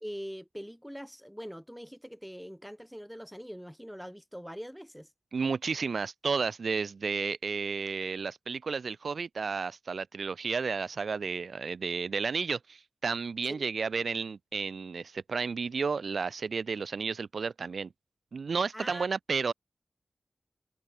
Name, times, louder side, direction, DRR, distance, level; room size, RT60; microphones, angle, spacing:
voice 1, 0.0-5.1 13.5-13.7 18.7-19.1, equal, ahead, 2.7 m, -43 dB
voice 2, 5.3-17.9 18.3-19.5, right 5 dB, 80° right, 0.3 m, -32 dB
cardioid pair, 45°, 0 cm